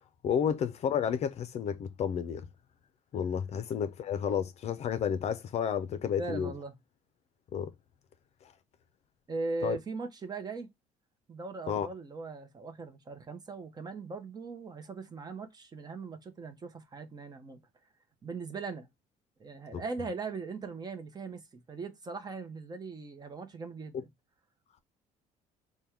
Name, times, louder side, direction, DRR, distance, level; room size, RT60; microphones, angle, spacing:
voice 1, 0.2-2.5 3.1-6.5 7.5-7.7 9.6-9.8 11.7-11.9 19.7-19.8, left 8 dB, 45° left, 0.5 m, -31 dB
voice 2, 6.2-6.7 9.3-10.7 11.3-17.6 18.2-18.9 19.4-21.4 21.7-24.0, right 3 dB, 25° right, 0.8 m, -39 dB
3.5 x 2.2 x 4.4 m
cardioid pair, 110°, 15 cm